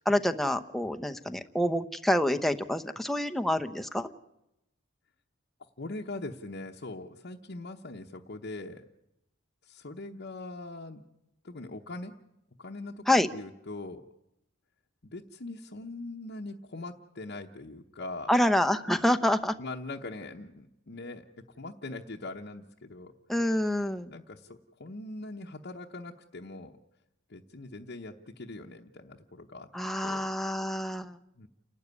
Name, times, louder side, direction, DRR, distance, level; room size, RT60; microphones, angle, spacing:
voice 1, 0.0-4.1 13.1-13.3 18.3-19.5 23.3-24.1 29.7-31.2, left 1 dB, ahead, 7 dB, 0.7 m, -27 dB
voice 2, 5.8-8.8 9.6-11.0 11.4-12.1 12.6-14.0 15.0-18.3 19.6-21.3 21.6-23.1 24.1-26.8 27.3-29.7 30.0-30.2 31.4-31.5, left 2 dB, 50° left, -1 dB, 1.0 m, -41 dB
29.0 x 12.0 x 9.6 m, 0.88 s
head